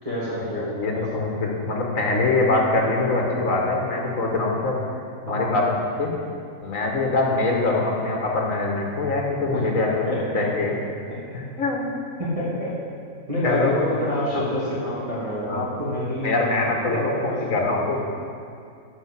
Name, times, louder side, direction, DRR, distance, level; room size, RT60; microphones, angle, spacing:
voice 1, 0.0-1.2 5.3-5.5 9.5-9.7 10.0-10.5 11.1-11.2 12.2-12.8 13.3-17.4 17.7-17.9, left 1 dB, 25° right, -9 dB, 2.8 m, -27 dB
voice 2, 0.8-4.8 5.3-6.1 6.6-10.7 11.3-12.0 13.4-13.8 14.3-14.4 15.5-15.6 16.2-17.1 17.5-18.0, left 2 dB, 80° left, 0 dB, 2.0 m, -23 dB
12.0 x 5.6 x 8.2 m, 2.4 s
omnidirectional pair, 1.4 m